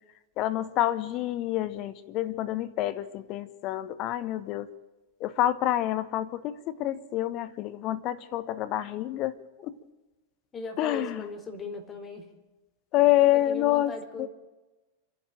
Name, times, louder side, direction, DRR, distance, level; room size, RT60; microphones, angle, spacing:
voice 1, 0.4-4.7 5.2-9.3 9.6-9.8 10.8-11.2 12.9-13.9 14.2-14.3, left 14 dB, 40° left, 15 dB, 1.1 m, -27 dB
voice 2, 10.5-12.3 13.3-14.3, left 4 dB, 25° left, 7 dB, 4.0 m, -38 dB
28.5 x 11.5 x 9.0 m, 1.1 s
figure-of-eight pair, 90°, 0 cm